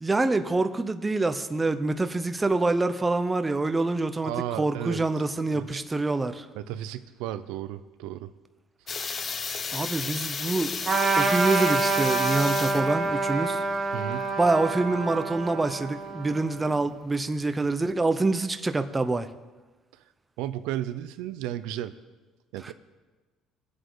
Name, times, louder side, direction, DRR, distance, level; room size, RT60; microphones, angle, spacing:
voice 1, 0.0-4.3 4.6-6.4 9.7-10.8 11.2-13.6 14.4-19.3 22.6-22.7, right 2 dB, 15° right, 9 dB, 0.7 m, -26 dB
voice 2, 4.2-5.0 5.5-5.8 6.5-8.3 13.9-14.3 20.4-21.9 22.5-22.7, right 12 dB, 90° right, 11 dB, 0.6 m, -34 dB
sound 1, 8.9-17.7, left 5 dB, 30° left, 0.7 m, -34 dB
Trumpet, 10.8-16.7, right 4 dB, 30° right, 1.3 m, -27 dB
22.0 x 8.0 x 4.0 m, 1.2 s
cardioid pair, 135°, 0 cm